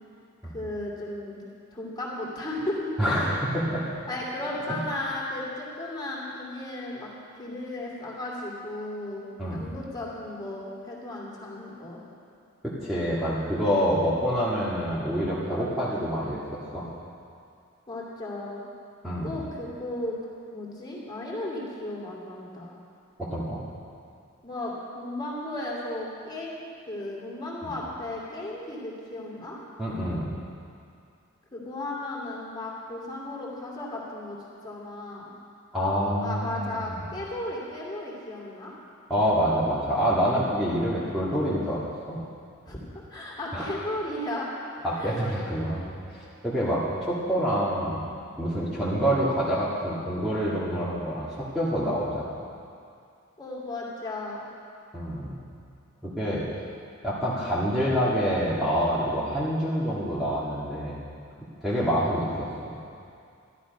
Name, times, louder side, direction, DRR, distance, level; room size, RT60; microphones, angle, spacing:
voice 1, 0.5-1.4 1.7-2.9 4.1-7.1 7.4-12.0 17.9-18.6 19.2-20.2 20.5-22.8 24.4-29.6 31.5-34.4 34.6-35.3 36.2-38.7 42.7-42.8 43.1-44.5 45.0-45.1 53.4-54.4 62.0-62.3, left 1 dB, 20° left, -4 dB, 2.6 m, -35 dB
voice 2, 3.0-3.8 4.7-4.8 9.4-9.7 12.6-16.9 19.0-19.4 23.2-23.6 27.6-27.7 29.8-30.3 35.7-37.0 39.1-41.8 42.1-42.2 43.5-43.7 44.8-48.0 48.4-51.3 51.5-52.2 54.9-55.3 56.0-56.4 57.0-61.0 61.6-62.8, equal, ahead, -10 dB, 1.7 m, -27 dB
12.5 x 12.5 x 5.3 m, 2.4 s
head